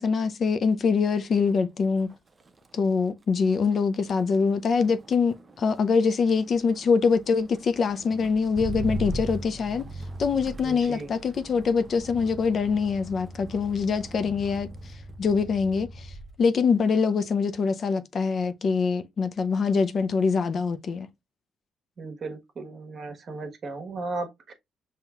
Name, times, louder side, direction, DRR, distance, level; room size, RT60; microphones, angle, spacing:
voice 1, 0.0-2.1 2.7-9.9 10.2-14.7 15.2-15.9 16.4-21.1, left 5 dB, 50° left, 0.5 m, -24 dB
Motor vehicle (road), 1.3-1.7 2.0-16.4 16.8-17.3, right 2 dB, 30° right, 0.7 m, -40 dB
voice 2, 10.6-11.1 22.0-24.5, right 3 dB, 50° right, 1.1 m, -36 dB
5.5 x 2.8 x 2.3 m
cardioid pair, 90°, 0 cm